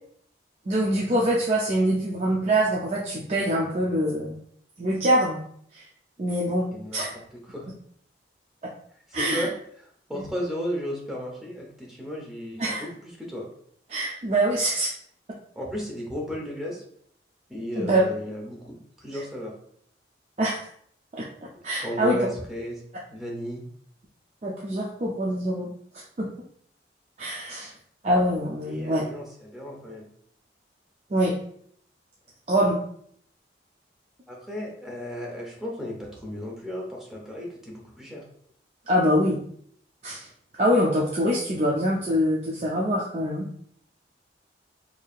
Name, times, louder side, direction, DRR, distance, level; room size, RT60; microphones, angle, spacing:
voice 1, 0.7-4.4 4.8-5.4 5.7-5.8 6.2-7.1 9.1-9.5 10.1-10.2 12.6-12.8 13.9-14.9 17.7-18.0 19.1-19.2 20.4-20.6 21.1-21.2 21.6-22.2 24.4-25.7 26.2-26.3 27.2-27.7 28.0-29.0 31.1-31.4 32.5-32.8 38.9-39.4 40.0-40.3 40.6-43.5, equal, 35° right, -3 dB, 0.4 m, -24 dB
voice 2, 6.7-7.0 7.5-7.6 9.1-9.5 10.1-12.9 13.2-13.5 15.5-16.8 17.5-19.5 21.8-22.8 23.1-23.6 28.7-30.1 34.3-38.2, equal, ahead, -3 dB, 0.7 m, -34 dB
4.6 x 2.7 x 2.4 m, 0.65 s
head